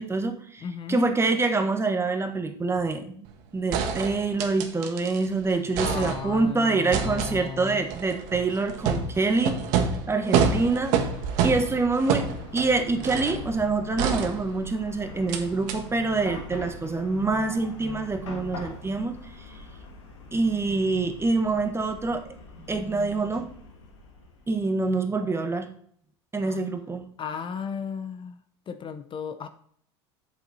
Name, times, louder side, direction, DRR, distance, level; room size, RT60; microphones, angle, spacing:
voice 1, 0.0-0.6 0.9-3.2 3.5-9.6 10.1-11.1 11.4-12.3 12.5-19.1 20.3-22.2 22.7-23.5 24.5-25.7 26.3-27.1, right 3 dB, 15° right, 7 dB, 1.3 m, -26 dB
voice 2, 0.6-1.1 5.8-7.8 26.4-26.6 27.2-28.4 28.7-29.5, left 6 dB, 35° left, 10 dB, 0.8 m, -35 dB
sound 1, 3.3-3.4 3.7-5.3 5.5-6.5 6.9-13.4 14.0-14.8 15.3-15.4 15.7-15.8, right 6 dB, 65° right, 1.5 m, -28 dB
Chatter / Car passing by / Traffic noise roadway noise, 10.3-24.6, left 4 dB, 85° left, 2.2 m, -43 dB
8.1 x 6.8 x 4.1 m, 0.62 s
hypercardioid pair, 90°, 15 cm